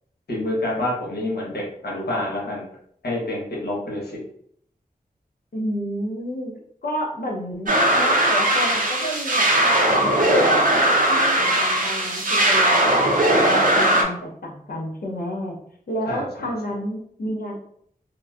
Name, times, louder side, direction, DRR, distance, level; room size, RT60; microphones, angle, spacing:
voice 1, 0.3-2.6 3.0-4.2 16.1-16.5, left 1 dB, 85° left, -4 dB, 1.1 m, -27 dB
voice 2, 5.5-6.5 6.8-15.6 15.9-17.6, equal, 70° left, 0 dB, 0.7 m, -30 dB
sound 1, 7.7-14.0, right 1 dB, 60° right, 0.6 m, -19 dB
3.0 x 2.5 x 2.3 m, 0.67 s
wide cardioid pair, 60°, 16 cm